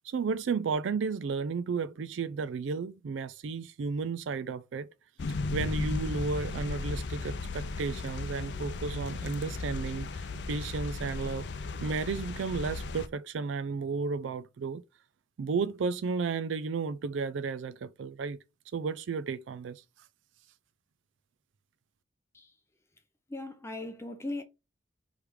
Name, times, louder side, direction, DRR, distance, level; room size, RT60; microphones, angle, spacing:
voice 1, 0.0-4.9 5.3-11.5 11.8-14.8 15.4-18.4 18.7-19.8, right 4 dB, 85° right, 0.4 m, -33 dB
sound 1, 5.2-13.1, left 3 dB, 65° left, 0.5 m, -35 dB
voice 2, 23.3-24.4, left 2 dB, 15° left, 0.5 m, -38 dB
3.5 x 3.2 x 4.7 m
head